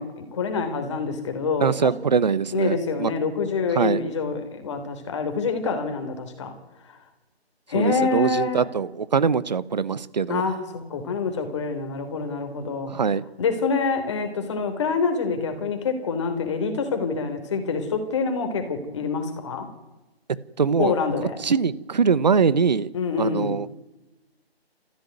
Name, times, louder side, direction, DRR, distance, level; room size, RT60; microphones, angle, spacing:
voice 1, 0.0-1.9 2.5-6.5 6.9-7.0 7.7-8.6 10.3-12.9 13.4-19.7 20.8-21.4 22.9-23.5, left 4 dB, 30° left, 7 dB, 3.5 m, -26 dB
voice 2, 1.6-3.1 3.8-4.0 7.7-10.4 12.9-13.2 20.6-22.9 23.2-23.8, right 5 dB, 40° right, 18 dB, 1.0 m, -23 dB
28.5 x 15.5 x 9.4 m, 1.1 s
figure-of-eight pair, 165°, 32 cm